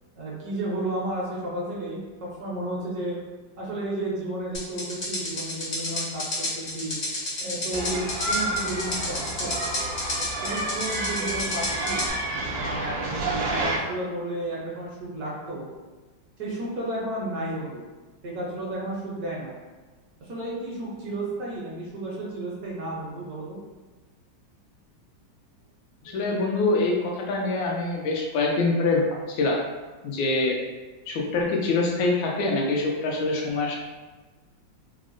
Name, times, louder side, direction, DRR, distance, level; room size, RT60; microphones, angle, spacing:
voice 1, 0.2-3.2 3.6-6.9 7.4-9.6 10.4-12.1 12.5-15.7 16.4-17.8 18.2-19.5 20.2-23.6 26.1-26.2, right 1 dB, 65° right, -5 dB, 1.0 m, -32 dB
sound 1, 4.5-12.1, left 2 dB, 55° left, 0.7 m, -30 dB
sound 2, 7.7-13.8, right 2 dB, 80° right, 1.3 m, -30 dB
voice 2, 26.0-29.6 30.0-30.6 31.1-33.8, left 3 dB, 85° left, -1 dB, 1.4 m, -25 dB
3.7 x 2.0 x 2.5 m, 1.3 s
omnidirectional pair, 2.1 m